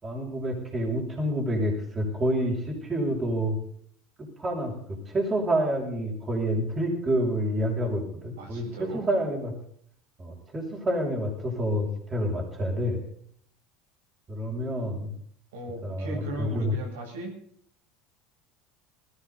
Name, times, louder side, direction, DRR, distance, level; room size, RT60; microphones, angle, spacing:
voice 1, 0.0-3.6 4.2-9.5 10.2-13.0 14.3-15.1 15.8-16.7, right 1 dB, 25° right, -2 dB, 6.8 m, -28 dB
voice 2, 8.4-9.1 15.5-17.4, right 1 dB, 75° right, 0 dB, 7.7 m, -37 dB
20.0 x 17.0 x 4.1 m, 0.64 s
hypercardioid pair, 75°, 0 cm